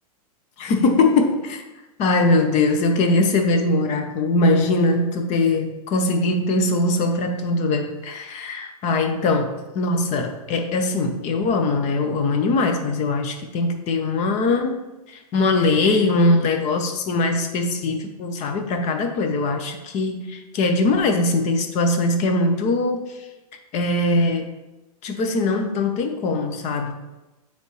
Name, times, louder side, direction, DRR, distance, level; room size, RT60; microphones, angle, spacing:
voice 1, 0.6-1.6 2.0-9.5 9.7-14.8 15.1-23.1 23.7-24.5 25.0-26.9, left 2 dB, 35° left, 5 dB, 0.9 m, -21 dB
9.4 x 3.4 x 3.2 m, 1.1 s
hypercardioid pair, 120°, 19 cm